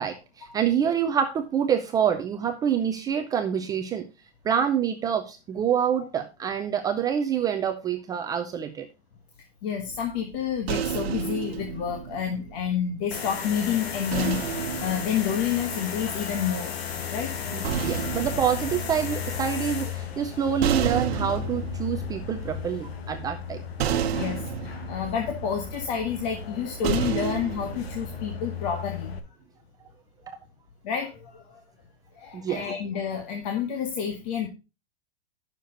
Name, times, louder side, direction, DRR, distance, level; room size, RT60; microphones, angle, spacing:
voice 1, 0.0-4.1 4.4-8.9 17.5-23.6 32.3-32.6, right 8 dB, 10° right, 6 dB, 0.5 m, -26 dB
voice 2, 9.6-16.7 17.1-17.4 18.0-18.1 24.0-29.1 30.8-31.6 32.1-34.5, left 8 dB, 40° left, 3 dB, 1.6 m, -29 dB
sound 1, 9.9-13.2 14.1-16.4 17.3-28.4, right 9 dB, 70° right, 1.1 m, -32 dB
sound 2, 13.1-29.2, left 8 dB, 70° left, 1.8 m, -35 dB
11.0 x 6.7 x 3.8 m, 0.28 s
hypercardioid pair, 150°, 32 cm